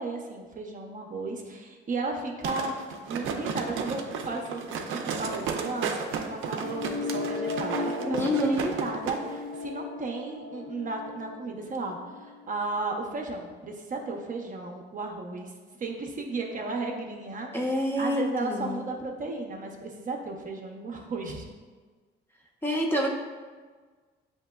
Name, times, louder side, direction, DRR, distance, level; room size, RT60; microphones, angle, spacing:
voice 1, 0.0-15.5 15.8-17.6 18.0-21.5, right 3 dB, 40° right, 1 dB, 0.6 m, -34 dB
sound 1, 2.4-9.2 9.5-9.6, right 6 dB, 85° right, 0.5 m, -33 dB
sound 2, 6.6-12.6, left 3 dB, 70° left, 0.6 m, -36 dB
voice 2, 8.0-8.7 17.5-18.8 22.6-23.1, equal, 10° left, -1 dB, 0.7 m, -27 dB
7.2 x 2.9 x 2.3 m, 1.4 s
cardioid pair, 90°, 20 cm